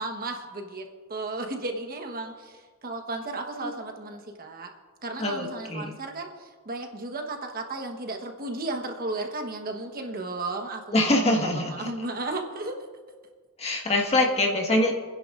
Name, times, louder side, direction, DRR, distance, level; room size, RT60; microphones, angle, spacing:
voice 1, 0.0-4.7 5.0-12.8, right 2 dB, 45° right, 3 dB, 1.3 m, -34 dB
voice 2, 5.2-6.0 10.9-11.9 13.6-15.0, left 1 dB, 30° left, 1 dB, 1.7 m, -24 dB
30.0 x 10.5 x 2.6 m, 1.5 s
head